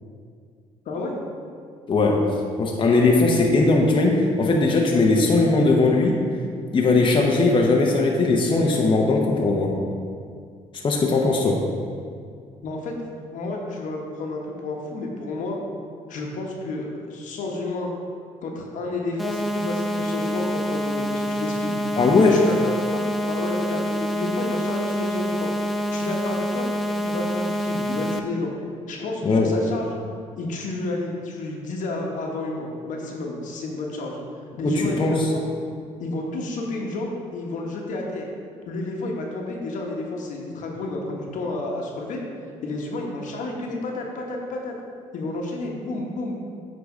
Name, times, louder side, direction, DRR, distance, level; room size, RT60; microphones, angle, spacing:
voice 1, 0.8-1.2 12.6-13.0 13.3-15.6 16.1-17.9 18.4-21.7 22.3-25.5 25.9-28.5 28.9-29.9 30.4-34.2 34.6-35.0 35.3-35.4 36.0-38.3 38.7-42.2 42.6-44.7 45.1-46.4, left 2 dB, 70° left, 0 dB, 1.2 m, -31 dB
voice 2, 1.9-2.3 2.6-6.2 6.7-9.8 10.7-11.6 22.0-22.4 29.2-29.5 34.6-35.3, left 3 dB, 40° left, -1 dB, 0.9 m, -19 dB
sound 1, 19.2-28.2, equal, ahead, 0.6 m, -26 dB
8.2 x 3.9 x 5.0 m, 2.2 s
cardioid pair, 85°, 13 cm